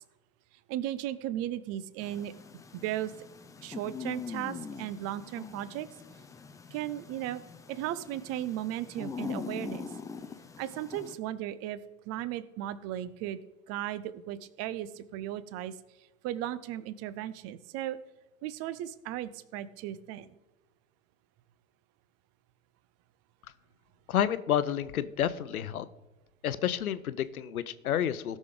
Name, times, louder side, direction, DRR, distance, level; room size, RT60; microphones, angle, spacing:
voice 1, 0.7-2.3 2.7-3.1 3.6-5.9 6.7-7.4 7.7-9.9 10.6-11.8 12.1-13.4 13.7-15.7 16.2-18.0 18.4-20.3, right 12 dB, 35° right, 16 dB, 0.7 m, -36 dB
sound 1, 2.0-11.2, left 5 dB, 10° left, 0.5 m, -43 dB
voice 2, 24.1-25.9 26.4-28.4, left 10 dB, 80° left, 14 dB, 0.8 m, -30 dB
16.5 x 6.3 x 3.8 m, 1.1 s
hypercardioid pair, 100°, 42 cm